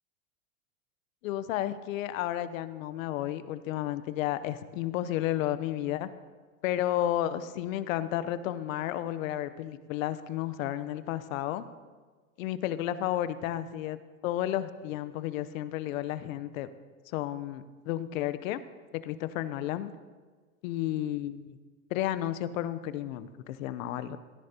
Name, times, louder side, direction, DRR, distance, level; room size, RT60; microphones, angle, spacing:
voice 1, 1.2-6.1 6.6-11.6 12.4-14.0 14.2-16.7 17.1-18.6 19.0-19.9 20.6-21.6 21.9-24.2, left 13 dB, 70° left, 14 dB, 0.8 m, -32 dB
16.5 x 11.0 x 2.8 m, 1.4 s
hypercardioid pair, 105°, 42 cm